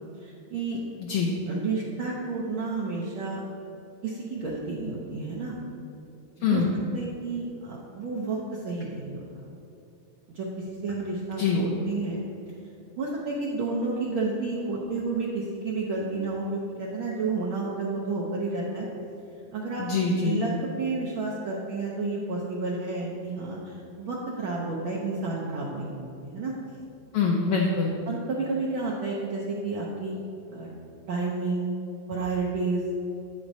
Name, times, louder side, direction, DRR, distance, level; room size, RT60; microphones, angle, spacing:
voice 1, 0.2-0.8 1.5-3.4 4.0-5.6 6.4-6.6 6.9-9.2 10.3-10.5 10.8-12.2 13.0-18.9 19.5-19.8 20.2-20.5 20.8-26.5 28.1-30.2 30.5-30.7 31.1-31.8 32.1-32.8, right 3 dB, 75° right, -4 dB, 1.1 m, -31 dB
voice 2, 6.4-6.7 11.4-11.6 19.8-20.4 27.1-27.9, left 5 dB, 75° left, -2 dB, 1.3 m, -24 dB
9.3 x 8.9 x 2.7 m, 2.8 s
omnidirectional pair, 3.3 m